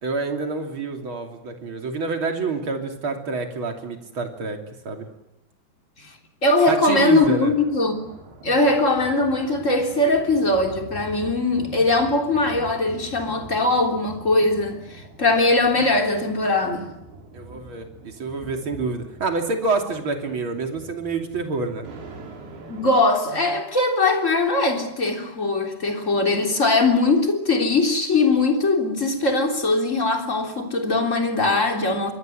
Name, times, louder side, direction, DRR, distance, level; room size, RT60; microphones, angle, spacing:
voice 1, 0.0-4.6 4.8-5.0 6.7-7.5 17.3-21.9, right 3 dB, 35° right, 3.2 m, -27 dB
voice 2, 6.4-8.1 8.4-16.9 22.7-32.1, left 2 dB, 20° left, 3.2 m, -21 dB
sound 1, 7.5-23.0, right 2 dB, 70° right, 5.9 m, -43 dB
27.0 x 22.5 x 7.9 m
omnidirectional pair, 4.7 m